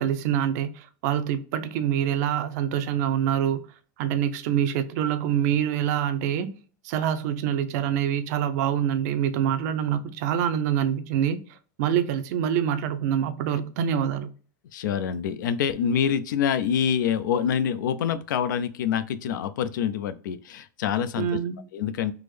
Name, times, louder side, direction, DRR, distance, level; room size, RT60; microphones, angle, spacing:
voice 1, 0.0-3.7 4.0-6.6 6.8-14.3 21.2-21.6, right 9 dB, 60° right, 0.5 m, -25 dB
voice 2, 14.7-21.3 21.7-22.1, left 8 dB, 85° left, 0.4 m, -26 dB
3.5 x 2.0 x 3.1 m
supercardioid pair, 135°, 10 cm